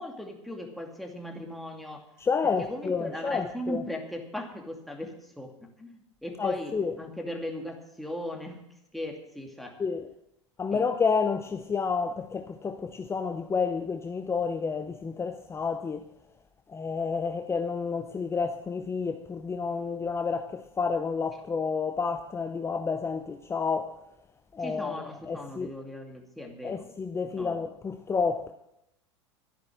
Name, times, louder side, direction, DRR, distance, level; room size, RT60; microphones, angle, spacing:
voice 1, 0.0-2.1 2.4-9.8 10.7-10.9 24.6-26.8 27.2-27.6, left 1 dB, ahead, 2.5 m, -38 dB
voice 2, 2.2-3.8 6.4-7.0 9.8-10.1 10.6-16.1 16.7-24.0 24.5-25.7 26.6-28.5, left 5 dB, 15° left, 0.8 m, -30 dB
12.0 x 10.5 x 6.3 m
hypercardioid pair, 90°, 16 cm